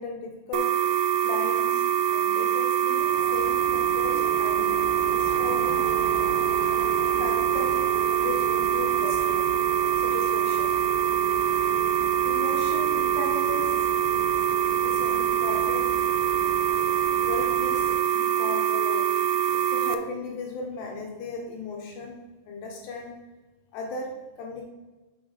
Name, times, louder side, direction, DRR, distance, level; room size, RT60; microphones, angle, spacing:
voice 1, 0.0-3.0 3.3-4.8 5.1-5.9 7.0-7.8 8.1-9.5 10.0-10.7 12.2-13.7 14.3-14.4 14.8-16.0 16.7-16.8 17.2-19.1 19.5-22.2 22.5-23.2 23.7-24.7, left 4 dB, 75° left, 0 dB, 2.6 m, -37 dB
sound 1, 0.5-20.0, right 9 dB, 85° right, 2.4 m, -24 dB
sound 2, 3.0-18.0, right 2 dB, 65° right, 2.8 m, -38 dB
6.4 x 5.9 x 3.8 m, 1.2 s
omnidirectional pair, 5.3 m